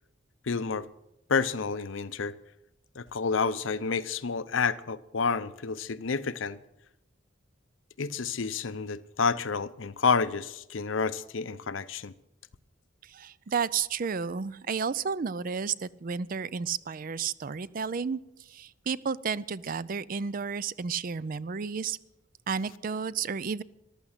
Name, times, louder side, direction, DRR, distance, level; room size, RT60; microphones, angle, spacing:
voice 1, 0.5-0.9 1.3-2.4 3.0-6.6 8.0-12.1, left 5 dB, 75° left, 0.7 m, -29 dB
voice 2, 13.1-18.2 18.5-22.0 22.5-23.6, right 6 dB, 45° right, 0.4 m, -32 dB
14.5 x 12.0 x 6.6 m
head